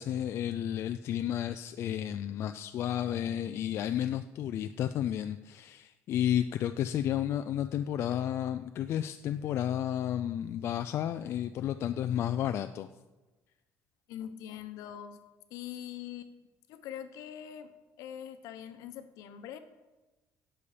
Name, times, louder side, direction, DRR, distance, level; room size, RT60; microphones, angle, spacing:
voice 1, 0.0-12.9, left 10 dB, 45° left, 9 dB, 0.4 m, -32 dB
voice 2, 14.1-15.2 15.5-16.3 16.7-19.6, left 10 dB, 70° left, 10 dB, 1.0 m, -43 dB
17.0 x 6.9 x 5.0 m, 1.1 s
cardioid pair, 175°, 6 cm